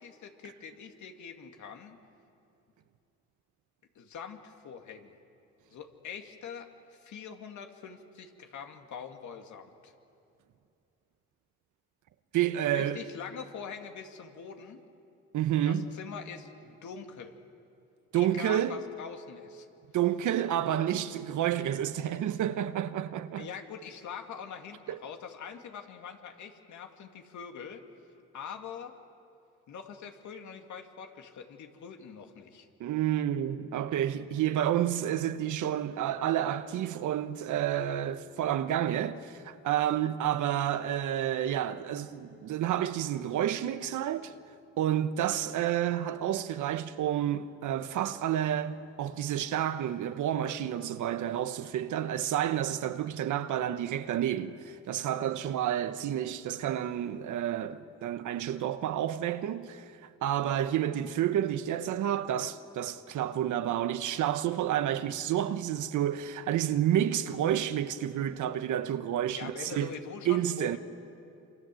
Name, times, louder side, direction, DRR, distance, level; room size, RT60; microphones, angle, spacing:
voice 1, 0.0-2.0 4.0-5.1 5.7-9.9 12.7-14.8 15.6-17.3 18.1-19.7 23.4-27.8 28.3-28.9 29.7-32.7 69.3-70.8, left 6 dB, 70° left, 2.5 m, -44 dB
voice 2, 12.3-13.0 15.3-15.9 18.1-18.8 19.9-23.5 24.9-25.0 32.8-44.3 44.8-59.8 60.2-69.9 70.2-70.8, right 11 dB, 80° right, 1.2 m, -30 dB
27.5 x 26.0 x 7.8 m
cardioid pair, 90°, 30 cm